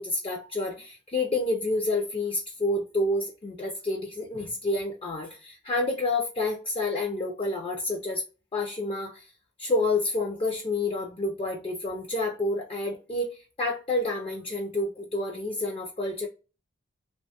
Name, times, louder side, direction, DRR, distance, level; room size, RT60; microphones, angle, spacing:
voice 1, 0.0-8.2 8.5-9.3 9.6-16.3, left 2 dB, 25° left, 0.4 m, -29 dB
2.9 x 2.2 x 2.7 m
head